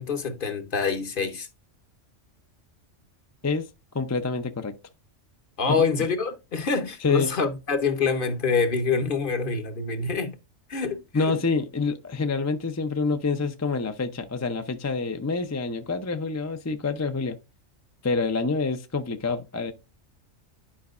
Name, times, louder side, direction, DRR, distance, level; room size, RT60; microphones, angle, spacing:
voice 1, 0.0-1.5 5.6-10.4 10.7-11.4, left 5 dB, 45° left, 1.0 m, -26 dB
voice 2, 3.9-4.7 5.7-5.8 7.0-7.3 11.1-17.4 18.0-19.7, left 4 dB, 20° left, 0.4 m, -27 dB
11.0 x 5.2 x 2.4 m
omnidirectional pair, 1.3 m